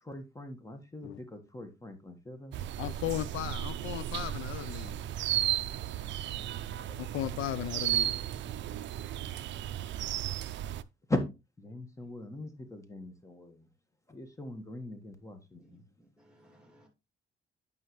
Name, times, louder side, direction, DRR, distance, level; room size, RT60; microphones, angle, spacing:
voice 1, 0.0-2.6 11.1-11.2 11.6-13.7 14.1-15.8, left 1 dB, 15° left, 1.5 m, -39 dB
sound 1, 2.5-10.8, right 12 dB, 70° right, 0.5 m, -34 dB
voice 2, 2.8-5.0 6.5-8.1, left 14 dB, 85° left, 0.5 m, -36 dB
voice 3, 15.6-16.9, right 1 dB, 5° right, 2.6 m, -61 dB
9.2 x 5.4 x 3.1 m
cardioid pair, 90°, 20 cm